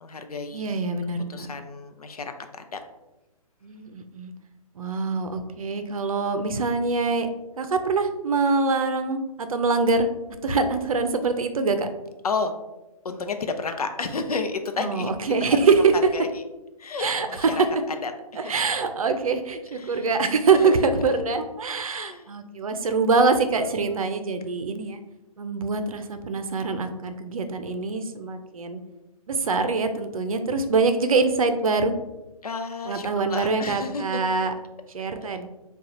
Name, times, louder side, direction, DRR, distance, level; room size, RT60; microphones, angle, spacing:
voice 1, 0.0-0.6 1.3-2.8 12.2-12.5 13.0-15.1 15.9-16.4 16.8-17.5 17.9-18.1 18.4-18.5 19.7-20.1 20.5-20.9 21.9-22.3 23.6-24.0 32.4-34.2, left 4 dB, 80° left, 6 dB, 0.6 m, -31 dB
voice 2, 0.5-1.5 3.6-4.3 4.8-7.3 7.6-10.1 10.4-11.9 14.8-15.9 17.0-17.5 18.4-25.0 25.4-28.8 29.3-31.9 32.9-34.5 34.9-35.5, right 4 dB, 65° right, 8 dB, 0.6 m, -24 dB
6.2 x 2.3 x 2.8 m, 1.0 s
figure-of-eight pair, 135°, 19 cm